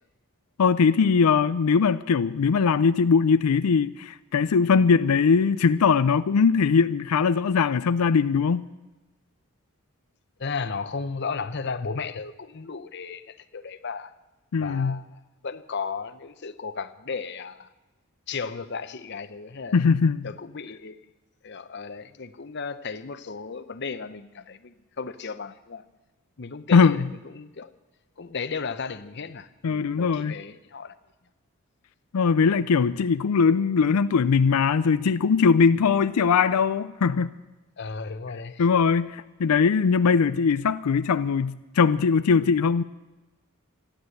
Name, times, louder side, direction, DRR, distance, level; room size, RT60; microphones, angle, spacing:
voice 1, 0.6-8.7 14.5-15.0 19.7-20.3 26.7-27.0 29.6-30.4 32.1-37.3 38.6-42.8, left 5 dB, 90° left, 0.5 m, -21 dB
voice 2, 10.4-14.1 14.6-17.7 18.3-19.9 20.2-21.0 21.4-25.8 26.4-27.7 28.2-30.9 37.8-38.7, left 5 dB, 50° left, 0.7 m, -35 dB
14.0 x 11.5 x 7.8 m
head